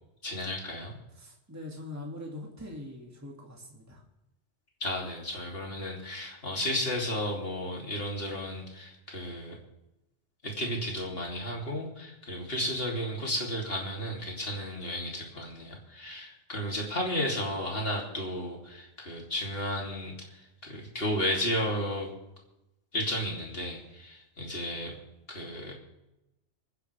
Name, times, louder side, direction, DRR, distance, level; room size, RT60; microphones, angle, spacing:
voice 1, 0.2-0.9 4.8-9.6 10.4-22.1 22.9-24.9 25.3-25.7, equal, 50° left, -1 dB, 3.2 m, -33 dB
voice 2, 1.1-4.0, left 1 dB, 15° right, -1 dB, 2.3 m, -42 dB
25.0 x 10.5 x 3.5 m, 0.93 s
omnidirectional pair, 1.2 m